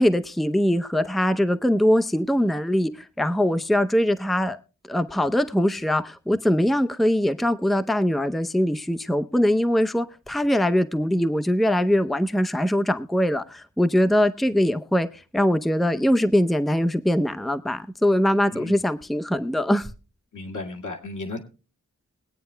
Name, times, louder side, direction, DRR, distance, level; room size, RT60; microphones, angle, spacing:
voice 1, 0.0-4.6 4.9-19.9, equal, ahead, 11 dB, 0.6 m, -22 dB
voice 2, 20.3-21.4, left 2 dB, 80° left, 1 dB, 2.1 m, -34 dB
22.0 x 9.2 x 2.2 m, 0.34 s
wide cardioid pair, 70°, 30 cm